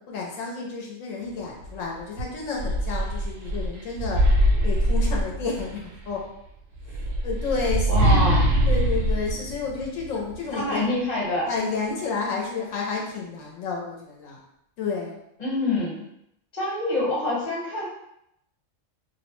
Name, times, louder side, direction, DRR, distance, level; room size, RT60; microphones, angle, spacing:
voice 1, 0.1-4.3 4.6-6.2 7.2-7.9 8.7-10.8 11.5-14.4 14.8-15.2, left 4 dB, 85° left, -1 dB, 1.0 m, -30 dB
sound 1, 1.6-1.8 2.2-5.8 6.7-10.4, right 1 dB, 90° right, 1.0 m, -23 dB
voice 2, 7.9-8.4 10.5-11.5 15.4-16.0 16.5-17.8, left 2 dB, 35° left, -6 dB, 1.0 m, -26 dB
2.5 x 2.1 x 2.9 m, 0.78 s
omnidirectional pair, 1.3 m